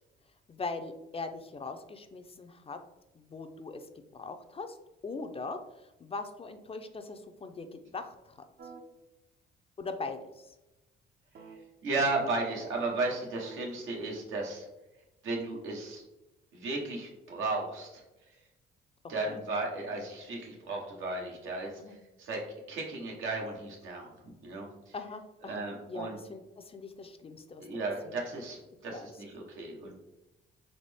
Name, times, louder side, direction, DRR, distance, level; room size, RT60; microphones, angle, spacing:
voice 1, 0.5-2.8 3.1-3.9 4.1-4.8 5.0-8.4 9.8-10.5 19.3-19.4 21.8-22.0 24.9-27.7 28.9-29.1, left 3 dB, 30° left, 7 dB, 0.4 m, -41 dB
sound 1, 8.6-8.8 11.3-13.8, right 5 dB, 50° right, 0.6 m, -50 dB
voice 2, 11.8-14.7 15.2-16.0 16.5-18.0 19.1-22.4 22.7-24.1 24.4-24.9 25.4-26.2 27.6-29.9, right 3 dB, 85° right, 0 dB, 1.1 m, -34 dB
4.1 x 3.0 x 3.4 m, 0.98 s
cardioid pair, 90°, 20 cm